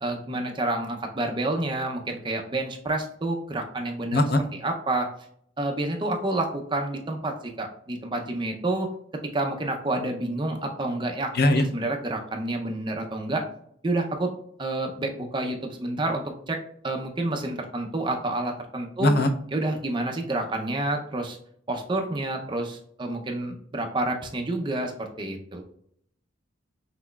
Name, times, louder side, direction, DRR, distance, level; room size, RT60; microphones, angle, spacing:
voice 1, 0.0-5.1 5.6-8.9 9.3-13.4 13.8-14.3 14.6-16.6 16.8-19.1 19.5-21.4 21.7-25.6, right 2 dB, 25° right, 3 dB, 0.5 m, -29 dB
voice 2, 4.1-4.4 11.4-11.6 19.0-19.3, left 2 dB, 55° left, 7 dB, 0.5 m, -20 dB
5.8 x 3.1 x 2.3 m, 0.67 s
head